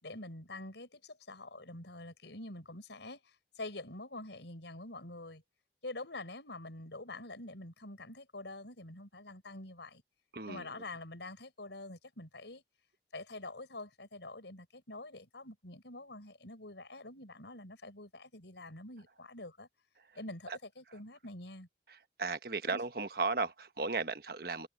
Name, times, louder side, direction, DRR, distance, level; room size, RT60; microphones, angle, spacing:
voice 1, 0.0-5.4 5.8-10.0 10.4-12.6 13.1-19.7 20.2-21.7 22.6-22.8, left 2 dB, 90° left, 5.5 m, -46 dB
voice 2, 10.3-10.7 22.2-24.7, right 3 dB, 55° right, 1.2 m, -35 dB
head